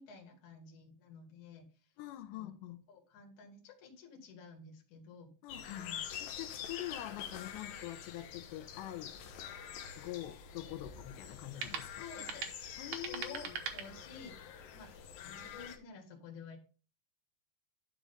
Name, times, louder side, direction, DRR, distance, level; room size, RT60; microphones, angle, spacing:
voice 1, 0.0-1.7 2.3-2.5 2.9-5.3 5.7-6.0 12.0-12.5 12.9-14.3 14.7-16.6, left 5 dB, 50° left, 2.9 m, -51 dB
voice 2, 2.0-2.8 5.4-5.9 6.2-9.1 10.0-12.0 12.8-13.6, left 14 dB, 90° left, 2.9 m, -45 dB
sound 1, 5.5-15.8, left 8 dB, 70° left, 2.3 m, -46 dB
sound 2, 9.1-14.5, right 7 dB, 85° right, 1.6 m, -45 dB
11.0 x 5.1 x 3.8 m
omnidirectional pair, 5.0 m